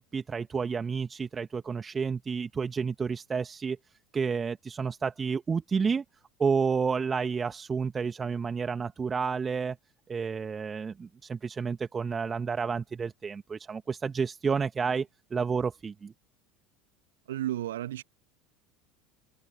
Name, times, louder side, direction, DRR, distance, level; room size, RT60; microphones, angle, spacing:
voice 1, 0.0-3.8 4.1-6.0 6.4-9.8 10.1-16.1, right 5 dB, 25° right, 1.9 m, -30 dB
voice 2, 17.3-18.0, right 13 dB, 65° right, 1.6 m, -32 dB
figure-of-eight pair, 70°, 0 cm